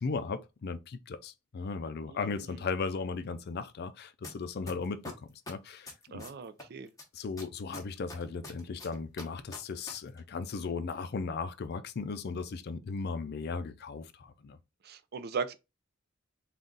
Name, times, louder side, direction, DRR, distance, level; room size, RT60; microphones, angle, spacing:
voice 1, 0.0-6.2 7.1-14.6, left 4 dB, 50° left, 0.4 m, -36 dB
voice 2, 2.1-2.6 6.1-6.9 14.8-15.5, right 5 dB, 50° right, 0.5 m, -38 dB
sound 1, 4.2-4.3 4.7-6.6 7.0-9.9 10.2-10.3, left 1 dB, 15° left, 1.0 m, -44 dB
3.9 x 2.4 x 3.8 m
head